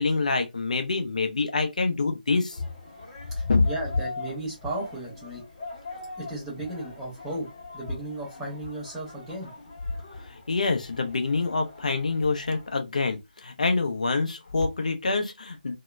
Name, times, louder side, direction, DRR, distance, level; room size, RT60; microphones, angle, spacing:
voice 1, 0.0-2.6 3.5-3.6 10.3-15.7, left 3 dB, 50° left, 0.6 m, -26 dB
sound 1, 2.5-12.8, left 3 dB, 30° left, 1.0 m, -43 dB
voice 2, 3.3-5.4 6.2-7.5 7.7-9.5, right 1 dB, 5° right, 0.9 m, -35 dB
2.8 x 2.1 x 2.3 m
figure-of-eight pair, 155°, 5 cm